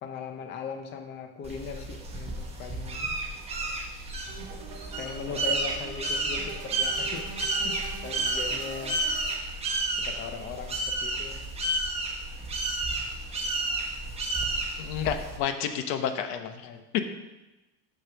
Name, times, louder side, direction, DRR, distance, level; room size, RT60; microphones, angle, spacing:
voice 1, 0.0-3.2 3.9-4.0 5.0-9.0 10.0-11.5 16.6-16.8, left 6 dB, 25° left, 5 dB, 0.6 m, -39 dB
sound 1, 1.4-15.4, right 2 dB, 15° right, 0.9 m, -31 dB
sound 2, 4.3-9.4, right 6 dB, 40° right, 1.0 m, -44 dB
voice 2, 14.8-16.6 16.9-17.0, left 9 dB, 85° left, 8 dB, 1.1 m, -29 dB
6.5 x 6.5 x 5.8 m, 1.0 s
cardioid pair, 165°, 47 cm